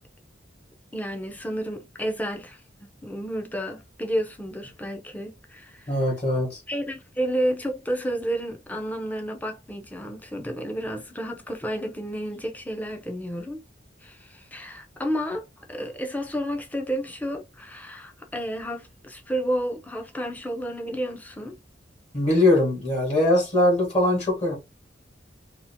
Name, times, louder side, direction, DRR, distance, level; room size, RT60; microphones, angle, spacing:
voice 1, 0.9-5.9 6.7-13.6 14.0-21.6, equal, 10° left, 0.5 m, -31 dB
voice 2, 5.9-6.6 22.1-24.6, left 1 dB, 35° left, 1.2 m, -21 dB
2.8 x 2.4 x 2.6 m
head